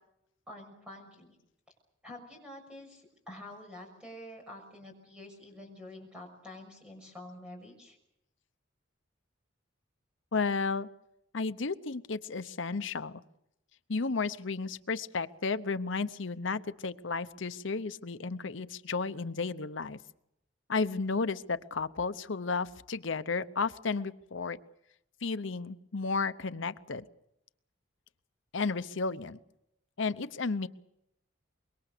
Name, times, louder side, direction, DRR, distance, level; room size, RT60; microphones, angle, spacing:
voice 1, 0.5-1.4 2.0-8.0, left 1 dB, 5° right, 1 dB, 6.1 m, -48 dB
voice 2, 10.3-10.9 11.3-13.2 13.9-20.0 20.7-24.6 25.2-27.0 28.5-29.4 30.0-30.7, left 4 dB, 65° left, 12 dB, 0.8 m, -33 dB
25.0 x 22.5 x 6.7 m, 0.81 s
head